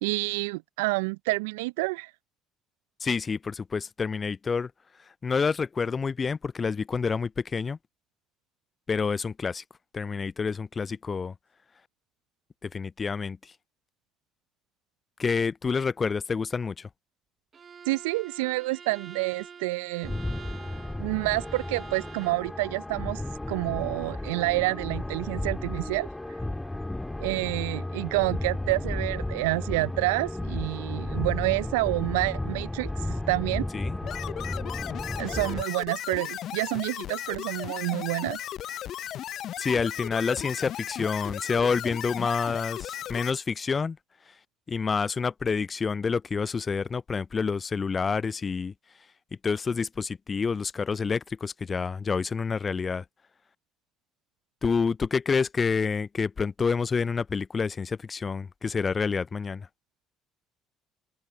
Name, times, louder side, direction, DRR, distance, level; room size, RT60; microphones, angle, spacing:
voice 1, 0.0-2.1 17.9-20.1 21.0-23.2 23.5-26.1 27.2-32.9 33.3-33.7 35.2-38.4, right 24 dB, 75° right, 0.6 m, -28 dB
voice 2, 3.0-4.7 5.2-7.8 8.9-9.6 9.9-11.3 12.6-13.4 15.2-16.9 33.7-34.0 39.6-44.0 44.7-48.7 49.4-53.0 54.6-59.7, left 5 dB, 30° left, 0.5 m, -28 dB
Bowed string instrument, 17.5-22.5, right 6 dB, 40° right, 1.2 m, -47 dB
sound 1, 20.0-35.6, left 1 dB, 10° left, 2.0 m, -33 dB
sound 2, 34.0-43.3, left 11 dB, 55° left, 0.9 m, -36 dB
open air
hypercardioid pair, 55°, 0 cm